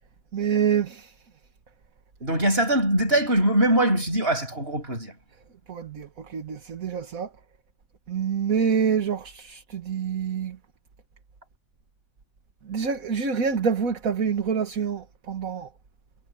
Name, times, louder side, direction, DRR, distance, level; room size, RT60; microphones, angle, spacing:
voice 1, 0.3-1.1 5.7-7.3 8.1-10.6 12.7-15.7, right 6 dB, 60° right, 2.0 m, -26 dB
voice 2, 2.2-5.1, right 1 dB, 35° right, 8.1 m, -22 dB
omnidirectional pair, 1.7 m